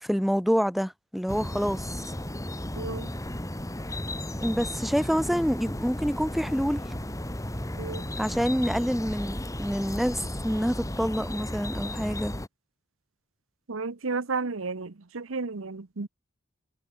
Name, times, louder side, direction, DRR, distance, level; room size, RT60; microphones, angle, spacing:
voice 1, 0.0-2.0 4.4-6.8 8.2-12.3, equal, ahead, 1.3 m, -27 dB
sound 1, 1.3-12.5, left 1 dB, 15° left, 2.6 m, -34 dB
voice 2, 2.7-3.1 7.8-8.0 13.7-16.1, right 4 dB, 75° right, 1.0 m, -32 dB
head